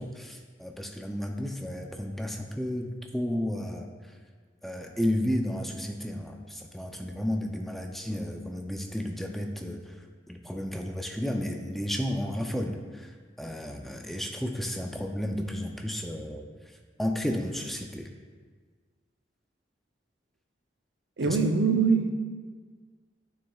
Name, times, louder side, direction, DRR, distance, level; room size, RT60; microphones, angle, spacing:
voice 1, 0.0-3.9 4.6-9.9 10.3-13.1 13.4-16.5 17.0-18.1 21.2-21.4, left 1 dB, ahead, 3 dB, 0.5 m, -32 dB
voice 2, 21.2-22.1, right 5 dB, 80° right, 5 dB, 0.6 m, -23 dB
9.8 x 6.3 x 2.4 m, 1.5 s
head